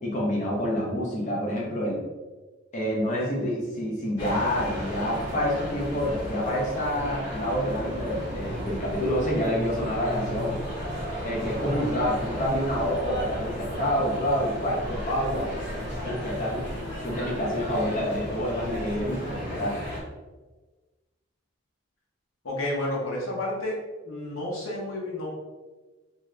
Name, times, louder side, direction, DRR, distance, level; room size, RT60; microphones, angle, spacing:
voice 1, 0.0-2.0 2.7-10.6 11.2-15.5 16.0-16.7 17.0-19.7, equal, 35° left, -5 dB, 0.6 m, -28 dB
sound 1, 4.2-20.0, equal, 55° left, 1.0 m, -34 dB
voice 2, 22.4-23.8 24.0-25.3, left 1 dB, 80° left, -4 dB, 0.9 m, -30 dB
2.7 x 2.4 x 3.2 m, 1.2 s
head